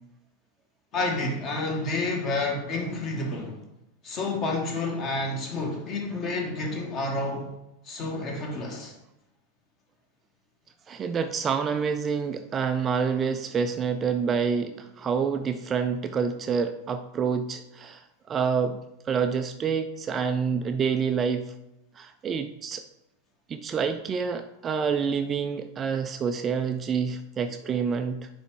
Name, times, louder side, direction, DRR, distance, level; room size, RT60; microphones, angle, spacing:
voice 1, 0.9-3.6 4.0-7.5 7.8-8.9, left 2 dB, 35° left, 1 dB, 1.5 m, -29 dB
voice 2, 10.9-18.8 19.1-21.5 22.0-22.8 23.5-28.3, right 6 dB, 25° right, 8 dB, 0.4 m, -27 dB
9.3 x 3.4 x 3.6 m, 0.87 s
figure-of-eight pair, 90°, 0 cm